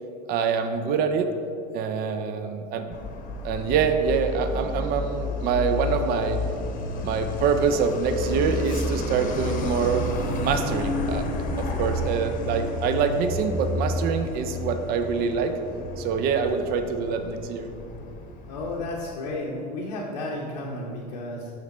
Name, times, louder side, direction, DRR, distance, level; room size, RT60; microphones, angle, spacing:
voice 1, 0.3-1.3 1.7-2.9 3.4-6.4 7.0-10.0 10.4-11.3 11.6-15.5 16.0-17.7, right 6 dB, 45° right, 8 dB, 0.5 m, -25 dB
Truck, 2.9-19.1, left 1 dB, 40° left, 0.8 m, -31 dB
voice 2, 18.5-21.5, left 2 dB, 85° left, -3 dB, 0.7 m, -32 dB
5.9 x 3.9 x 4.2 m, 2.6 s
hypercardioid pair, 90°, 21 cm